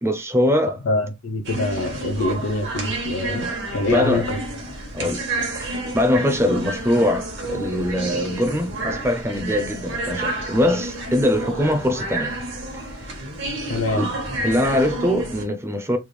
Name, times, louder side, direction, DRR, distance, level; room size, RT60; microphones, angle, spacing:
voice 1, 0.0-0.8 3.3-3.5 3.9-4.3 4.9-5.2 5.5-12.3 12.9-13.1 13.9-14.1 14.4-16.0, left 1 dB, 15° right, 0.6 m, -22 dB
voice 2, 0.8-3.5 3.7-4.4 5.0-5.1 13.7-14.1, left 2 dB, 70° left, 0.5 m, -25 dB
sound 1, 1.4-15.4, right 2 dB, 60° right, 1.2 m, -30 dB
3.5 x 2.3 x 3.2 m
head